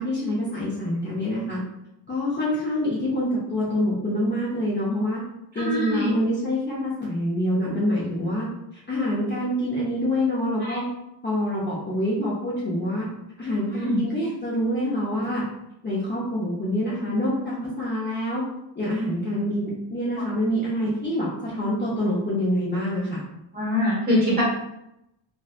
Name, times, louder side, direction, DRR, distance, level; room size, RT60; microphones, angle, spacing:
voice 1, 0.0-1.6 2.1-5.2 5.5-8.5 8.9-10.8 11.2-13.1 13.4-15.4 15.8-18.4 18.8-23.2, equal, 25° left, -7 dB, 0.6 m, -26 dB
voice 2, 5.5-6.1 10.6-10.8 13.7-14.0 20.2-20.3 23.5-24.4, left 1 dB, 20° right, -6 dB, 0.9 m, -24 dB
2.6 x 2.2 x 2.4 m, 0.83 s
cardioid pair, 130°, 45 cm